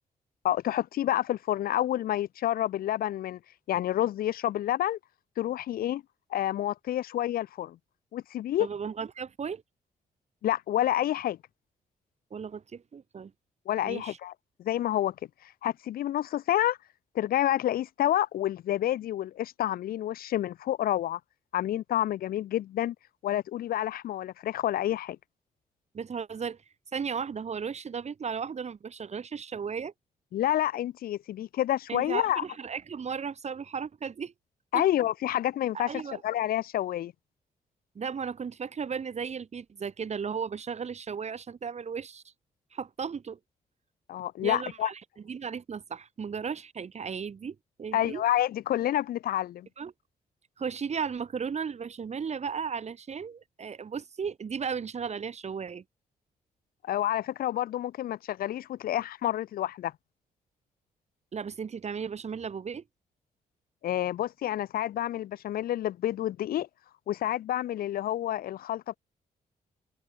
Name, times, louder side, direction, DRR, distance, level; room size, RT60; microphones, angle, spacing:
voice 1, 0.4-3.4 3.7-5.0 5.4-6.0 6.3-7.8 8.1-8.7 10.4-11.4 13.7-14.3 14.6-15.1 15.6-16.8 17.1-21.2 21.5-22.9 23.2-25.2 30.3-32.4 34.7-35.9 36.2-37.1 44.1-44.9 47.9-49.7 56.8-59.9 63.8-66.7 67.1-69.0, left 12 dB, 85° left, 5.9 m, -29 dB
voice 2, 8.6-9.6 12.3-13.3 13.8-14.2 25.9-26.6 26.9-29.9 31.9-34.3 34.7-34.8 35.7-36.2 38.0-42.2 42.7-43.4 44.4-45.0 45.3-48.2 49.8-49.9 50.6-55.8 61.3-62.8, right 6 dB, 50° right, 5.1 m, -35 dB
open air
cardioid pair, 80°, 15 cm